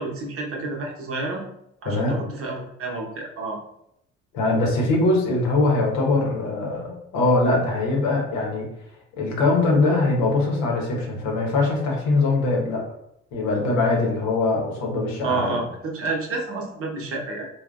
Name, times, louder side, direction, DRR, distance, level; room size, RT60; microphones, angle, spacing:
voice 1, 0.0-1.4 1.8-3.6 15.2-17.5, right 3 dB, 40° right, 0 dB, 0.8 m, -29 dB
voice 2, 1.8-2.2 4.3-8.7 9.2-12.8 13.3-15.6, left 2 dB, 65° left, -1 dB, 0.9 m, -22 dB
4.0 x 2.2 x 2.3 m, 0.77 s
figure-of-eight pair, 45°, 33 cm